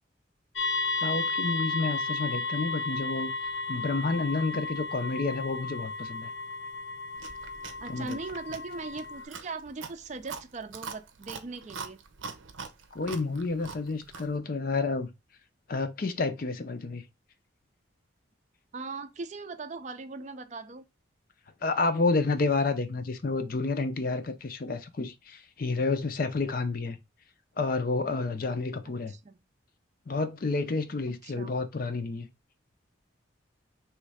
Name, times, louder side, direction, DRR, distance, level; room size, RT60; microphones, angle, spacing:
sound 1, 0.6-9.2, left 3 dB, 70° left, 0.9 m, -33 dB
voice 1, 1.0-3.3 3.7-6.3 7.9-8.2 12.9-15.1 15.7-17.0 21.6-27.0 27.6-29.1 30.1-32.3, left 3 dB, 45° left, 0.5 m, -30 dB
Chewing mastication, 7.2-14.4, right 5 dB, 80° right, 0.7 m, -44 dB
voice 2, 7.8-12.0 18.7-20.8 28.9-29.3 31.2-31.5, right 3 dB, 35° right, 0.4 m, -39 dB
3.2 x 3.2 x 4.8 m
head